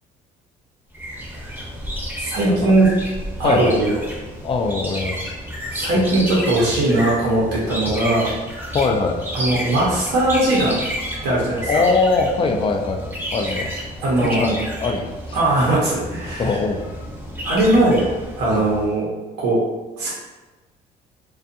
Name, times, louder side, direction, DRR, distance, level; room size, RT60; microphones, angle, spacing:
sound 1, 0.9-19.0, equal, 15° right, 0.7 m, -31 dB
voice 1, 2.2-2.9 3.4-4.0 5.7-8.3 9.3-10.8 11.2-11.7 14.0-14.6 15.3-16.6 17.4-18.0 18.4-19.1 19.4-19.6 20.0-20.1, right 1 dB, 80° right, -6 dB, 0.8 m, -19 dB
voice 2, 3.4-3.8 4.4-5.2 5.9-6.0 8.7-9.2 11.7-13.7 14.2-15.4 16.4-16.8 18.5-18.7, left 3 dB, 30° left, 4 dB, 0.3 m, -22 dB
2.5 x 2.3 x 2.6 m, 1.2 s
cardioid pair, 110°, 17 cm